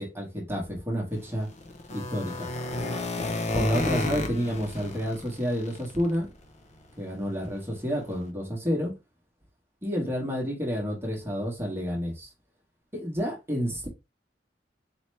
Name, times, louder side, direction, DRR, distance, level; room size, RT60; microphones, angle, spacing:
voice 1, 0.0-1.5 1.9-2.5 3.5-6.3 7.0-8.9 9.8-12.3 12.9-13.9, equal, 15° right, 1.2 m, -30 dB
sound 1, 1.2-6.3 6.7-6.9 7.3-7.5 7.7-7.8 8.2-8.3, left 2 dB, 40° left, 0.8 m, -32 dB
4.2 x 2.9 x 3.2 m
head